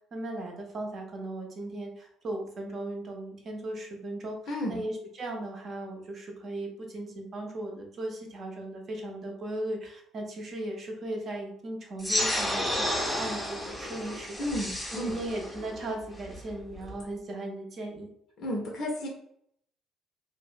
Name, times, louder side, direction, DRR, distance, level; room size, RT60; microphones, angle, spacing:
voice 1, 0.1-14.4 14.9-18.1, right 1 dB, 40° right, 1 dB, 0.6 m, -37 dB
voice 2, 4.5-4.8 14.4-15.1 18.4-19.1, equal, 50° left, -1 dB, 0.5 m, -32 dB
sound 1, 12.0-17.0, left 1 dB, ahead, 0.6 m, -32 dB
2.5 x 2.0 x 2.4 m, 0.69 s
figure-of-eight pair, 50°, 0 cm